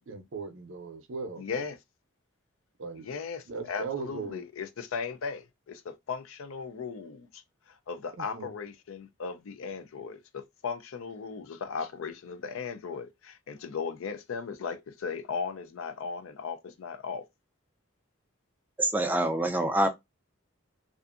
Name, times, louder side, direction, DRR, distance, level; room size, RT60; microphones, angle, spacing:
voice 1, 0.1-1.4 2.8-3.1 3.5-4.4 8.2-8.5, right 4 dB, 65° right, 0.5 m, -38 dB
voice 2, 1.4-1.8 3.0-7.4 7.7-17.3, left 5 dB, 75° left, 0.4 m, -37 dB
voice 3, 18.8-19.9, right 1 dB, 10° right, 0.3 m, -25 dB
2.5 x 2.4 x 2.4 m
head